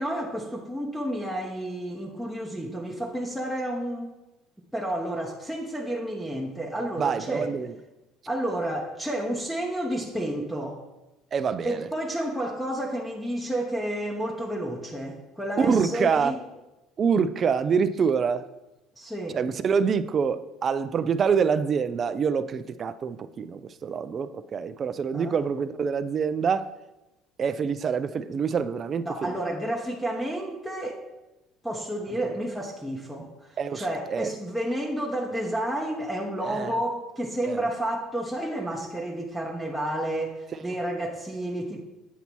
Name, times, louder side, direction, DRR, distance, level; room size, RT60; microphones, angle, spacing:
voice 1, 0.0-4.1 4.7-7.6 8.3-10.8 11.6-16.4 19.0-19.4 25.1-25.4 29.0-31.1 31.6-41.8, right 1 dB, ahead, -2 dB, 0.8 m, -31 dB
voice 2, 7.0-7.7 11.3-11.9 15.6-16.3 17.0-18.5 19.3-26.7 27.4-29.4 32.2-32.3 33.6-34.3 36.4-36.8 37.5-37.7, right 6 dB, 40° right, 12 dB, 0.4 m, -26 dB
8.2 x 2.8 x 6.1 m, 1.0 s
supercardioid pair, 105°, 0 cm